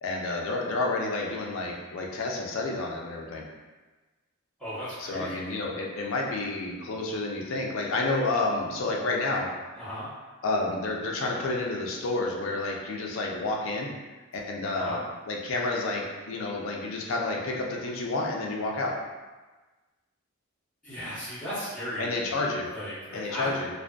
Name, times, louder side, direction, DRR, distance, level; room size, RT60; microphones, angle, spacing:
voice 1, 0.0-3.5 5.0-9.5 10.4-13.9 14.3-15.0 15.3-19.0 22.0-22.7 23.1-23.7, left 2 dB, 65° left, -1 dB, 0.4 m, -30 dB
voice 2, 4.6-5.5 9.8-10.1 14.8-15.0 20.8-22.4 22.7-23.6, equal, 5° left, -16 dB, 0.9 m, -36 dB
2.5 x 2.5 x 2.2 m, 1.2 s
head